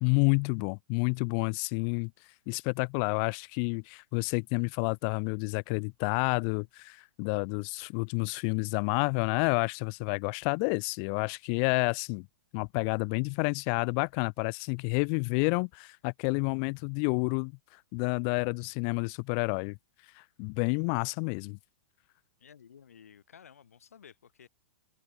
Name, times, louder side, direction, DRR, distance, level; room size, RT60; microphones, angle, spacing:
voice 1, 0.0-2.1 2.5-12.3 12.5-17.5 17.9-19.8 20.2-21.6, left 40 dB or more, 40° left, 0.3 m, -29 dB
voice 2, 22.4-24.5, left 8 dB, 90° left, 2.1 m, -54 dB
hypercardioid pair, 135°, 8 cm